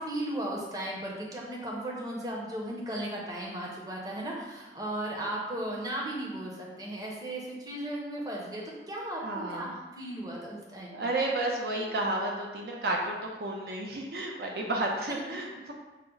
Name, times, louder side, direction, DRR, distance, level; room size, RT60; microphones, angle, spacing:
voice 1, 0.0-9.2 9.5-11.1, right 1 dB, 20° right, -3 dB, 0.7 m, -36 dB
voice 2, 9.2-9.7 10.9-15.7, right 2 dB, 60° right, 0 dB, 0.5 m, -32 dB
5.7 x 2.0 x 3.8 m, 1.1 s
head